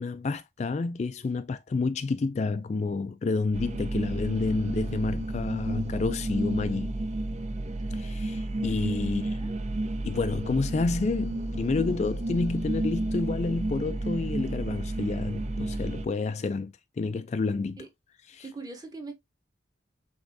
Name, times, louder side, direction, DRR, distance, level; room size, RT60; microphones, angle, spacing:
voice 1, 0.0-7.0 7.9-9.4 10.0-17.8 18.3-18.4, left 3 dB, 35° left, 0.3 m, -29 dB
sound 1, 3.5-16.1, right 1 dB, 35° right, 0.4 m, -31 dB
voice 2, 9.0-9.6 17.8-17.9 18.4-19.1, right 3 dB, 20° right, 1.0 m, -42 dB
5.2 x 3.6 x 2.6 m
head